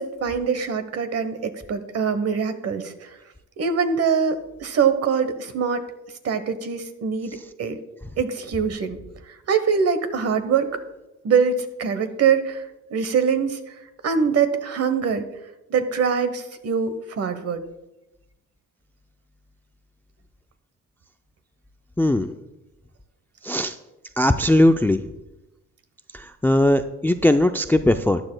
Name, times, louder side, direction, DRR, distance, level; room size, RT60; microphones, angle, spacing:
voice 1, 0.0-3.2 3.6-5.8 6.2-7.8 8.2-9.0 9.5-10.7 11.2-12.6 12.9-13.6 14.0-15.2 15.7-17.6, right 6 dB, 55° right, 10 dB, 1.0 m, -23 dB
voice 2, 22.0-22.3 23.4-23.8 24.2-25.0 26.1-28.2, left 1 dB, 5° left, 9 dB, 0.3 m, -19 dB
13.5 x 9.9 x 2.2 m, 0.97 s
cardioid pair, 90°, 30 cm